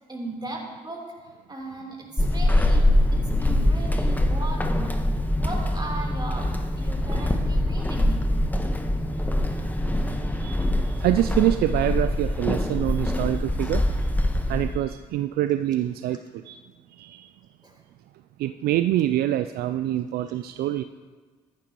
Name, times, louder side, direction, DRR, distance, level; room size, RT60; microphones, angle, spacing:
voice 1, 0.1-5.0 5.4-8.7 13.4-13.7 15.4-15.8 17.6-17.8, right 2 dB, 25° right, 0 dB, 3.5 m, -38 dB
Walk footsteps / Squeak, 2.2-14.8, left 1 dB, 10° left, 1.2 m, -24 dB
voice 2, 10.2-13.8 14.5-16.6 17.0-17.3 18.4-20.8, right 13 dB, 65° right, 10 dB, 0.4 m, -25 dB
14.0 x 11.5 x 3.0 m, 1.4 s
hypercardioid pair, 45°, 17 cm